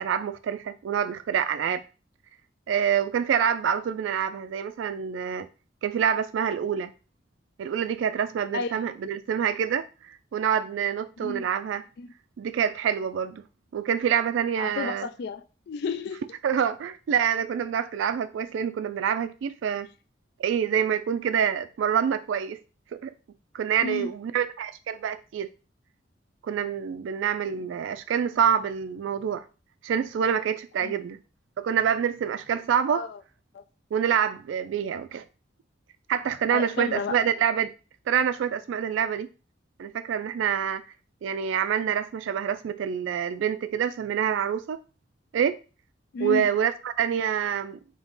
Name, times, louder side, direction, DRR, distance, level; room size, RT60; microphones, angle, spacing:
voice 1, 0.0-1.8 2.7-5.5 5.8-6.9 7.6-11.8 12.4-13.4 13.7-15.1 16.4-19.9 20.4-22.6 22.9-23.1 23.5-25.5 26.4-29.4 29.8-31.2 31.6-33.0 33.9-35.2 36.1-37.7 38.1-39.3 39.8-40.8 41.2-44.8 45.3-45.6 46.2-47.8, right 8 dB, 85° right, 0.3 m, -26 dB
voice 2, 8.5-8.8 11.2-11.4 12.0-12.1 14.6-16.2 23.8-24.1 30.8-30.9 32.9-33.2 33.5-33.6 36.5-37.2 46.1-46.5, left 5 dB, 60° left, 0.3 m, -32 dB
3.6 x 2.9 x 3.9 m
head